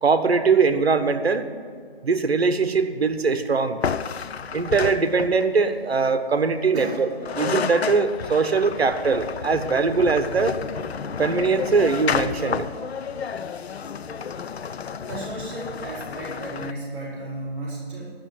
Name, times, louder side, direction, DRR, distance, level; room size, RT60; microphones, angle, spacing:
voice 1, 0.0-1.5 2.0-3.8 4.5-7.1 7.4-10.6 11.2-12.7, right 4 dB, 75° right, 9 dB, 1.2 m, -21 dB
sound 1, 3.8-5.6 6.9-7.0 7.2-16.7, left 7 dB, 80° left, 0.6 m, -31 dB
voice 2, 15.0-18.1, right 1 dB, 30° right, -11 dB, 4.2 m, -33 dB
12.0 x 6.6 x 9.4 m, 2.1 s
hypercardioid pair, 160°, 31 cm